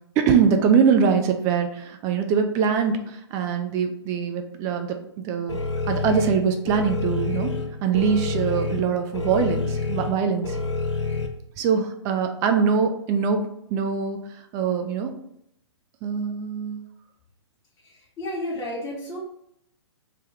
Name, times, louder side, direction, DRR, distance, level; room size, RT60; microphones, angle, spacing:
voice 1, 0.2-5.0 5.2-5.6 5.9-7.5 7.8-10.6 11.6-14.2 14.5-15.1 16.0-16.8, right 6 dB, 20° right, 6 dB, 0.4 m, -23 dB
sound 1, 5.5-11.3, left 3 dB, 75° left, 0.7 m, -28 dB
voice 2, 18.2-19.2, left 1 dB, 20° left, -7 dB, 0.8 m, -31 dB
3.3 x 2.2 x 3.3 m, 0.76 s
figure-of-eight pair, 125°, 15 cm